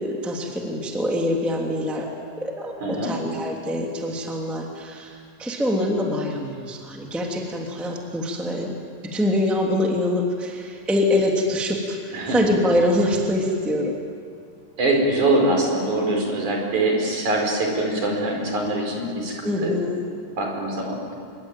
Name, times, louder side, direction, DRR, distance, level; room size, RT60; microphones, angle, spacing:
voice 1, 0.0-8.7 9.0-14.0 19.4-20.0, left 1 dB, ahead, 0 dB, 2.4 m, -24 dB
voice 2, 2.8-3.1 12.1-12.4 14.8-19.7 20.4-21.0, right 2 dB, 55° right, 1 dB, 6.2 m, -23 dB
26.0 x 23.0 x 9.2 m, 2.2 s
omnidirectional pair, 4.1 m